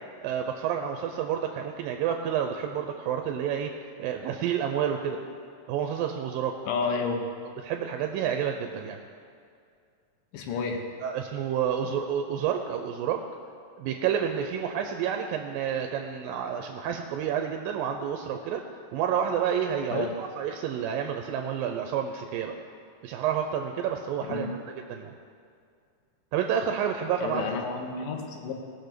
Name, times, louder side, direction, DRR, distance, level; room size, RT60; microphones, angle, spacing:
voice 1, 0.2-5.2 5.7-6.6 7.6-9.0 11.0-13.2 13.8-18.6 18.9-22.6 23.0-24.6 24.9-25.1 26.3-27.5, right 8 dB, 90° right, 4 dB, 2.4 m, -29 dB
voice 2, 6.7-7.3 10.3-10.8 19.9-20.1 24.3-24.5 27.2-28.5, left 5 dB, 80° left, 3 dB, 2.8 m, -30 dB
18.0 x 6.1 x 6.7 m, 2.3 s
omnidirectional pair, 3.9 m